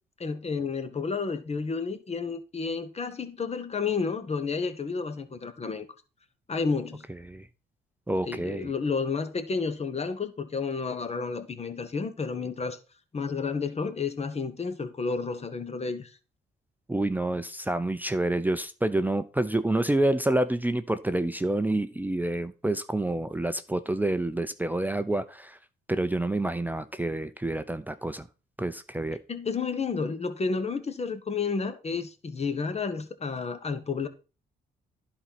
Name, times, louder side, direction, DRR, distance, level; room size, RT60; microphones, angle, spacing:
voice 1, 0.2-5.8 6.5-7.0 8.3-12.8 13.1-16.1 29.3-34.1, left 5 dB, 30° left, 1.3 m, -31 dB
voice 2, 8.1-8.7 16.9-25.6 25.9-28.3 28.6-29.2, right 1 dB, 10° right, 0.6 m, -28 dB
11.0 x 4.4 x 5.8 m
cardioid pair, 90°, 20 cm